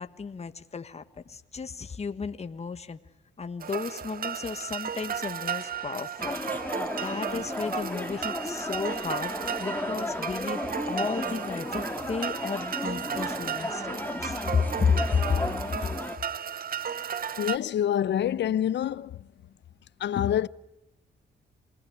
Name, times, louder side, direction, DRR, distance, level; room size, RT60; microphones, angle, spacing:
voice 1, 0.0-3.0 3.4-6.4 7.0-9.3 9.6-10.6 10.9-15.4 15.8-15.9, left 5 dB, 35° left, 1.5 m, -32 dB
sound 1, 3.6-17.6, right 8 dB, 50° right, 1.0 m, -35 dB
sound 2, 6.2-16.2, left 1 dB, 10° left, 2.1 m, -34 dB
voice 2, 17.4-19.2 20.0-20.5, left 10 dB, 70° left, 0.9 m, -26 dB
27.5 x 20.0 x 9.6 m
cardioid pair, 75°, 19 cm